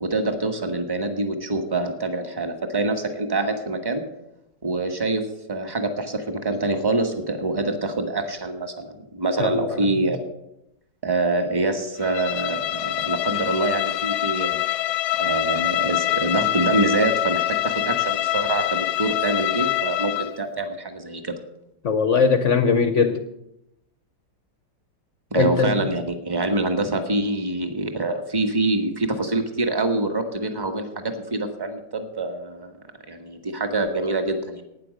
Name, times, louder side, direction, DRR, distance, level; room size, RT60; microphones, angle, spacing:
voice 1, 0.0-4.0 4.6-10.2 11.0-14.6 15.2-21.4 25.3-32.8 33.1-34.6, right 2 dB, 15° right, 5 dB, 0.9 m, -25 dB
voice 2, 9.4-10.0 21.8-23.2 25.3-25.8, left 5 dB, 65° left, 9 dB, 0.7 m, -21 dB
Bowed string instrument, 12.0-20.4, left 16 dB, 90° left, 1.4 m, -25 dB
12.5 x 9.5 x 6.4 m, 0.85 s
omnidirectional pair, 2.1 m